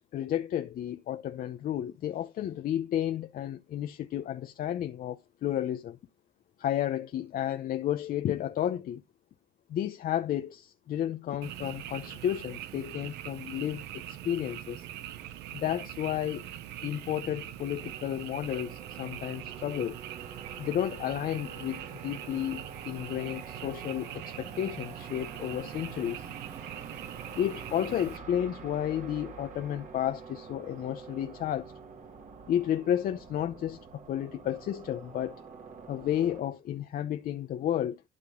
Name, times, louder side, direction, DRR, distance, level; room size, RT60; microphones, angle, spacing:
voice 1, 0.0-6.0 6.6-9.0 9.7-14.9 15.5-16.4 16.8-20.0 20.6-26.3 27.4-31.7 32.5-35.4 35.9-38.0, left 11 dB, 55° left, 0.8 m, -32 dB
Frog, 11.4-28.2, right 12 dB, 85° right, 1.0 m, -43 dB
sound 1, 17.8-36.4, right 5 dB, 50° right, 2.8 m, -47 dB
12.0 x 5.2 x 3.8 m
cardioid pair, 110°, 17 cm